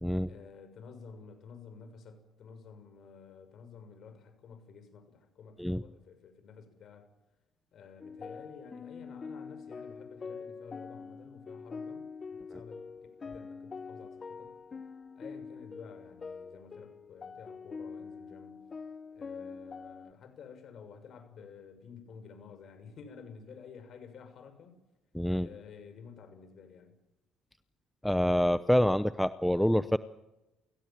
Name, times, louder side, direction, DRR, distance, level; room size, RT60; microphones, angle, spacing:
voice 1, 0.2-7.1 7.7-14.6 15.1-18.6 19.1-24.8 25.4-27.0, left 6 dB, 50° left, 8 dB, 6.7 m, -51 dB
sound 1, 8.0-20.1, left 5 dB, 30° left, 1.1 m, -44 dB
voice 2, 25.1-25.5 28.0-30.0, equal, 5° left, 13 dB, 0.7 m, -26 dB
29.0 x 17.0 x 7.5 m, 0.98 s
cardioid pair, 100°, 0 cm